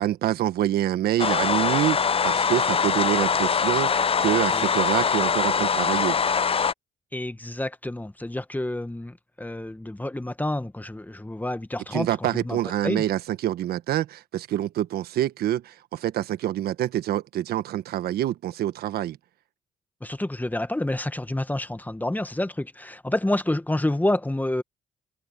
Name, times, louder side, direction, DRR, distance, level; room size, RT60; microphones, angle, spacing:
voice 1, 0.0-6.2 11.9-19.2, right 12 dB, 75° right, 1.5 m, -26 dB
sound 1, 1.2-6.7, left 6 dB, 35° left, 0.6 m, -23 dB
voice 2, 7.1-13.0 20.0-24.6, left 1 dB, 10° left, 1.7 m, -28 dB
supercardioid pair, 55°, 16 cm